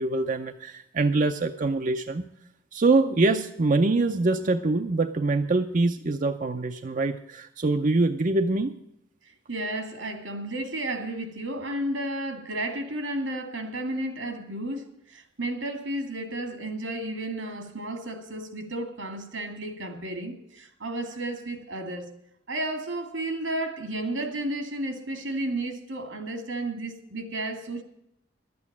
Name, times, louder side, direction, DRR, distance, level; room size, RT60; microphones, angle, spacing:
voice 1, 0.0-2.2 2.7-8.7, right 3 dB, 45° right, 0.6 m, -24 dB
voice 2, 9.5-22.1 22.5-27.8, right 1 dB, 85° right, 2.3 m, -32 dB
12.0 x 8.6 x 7.3 m
head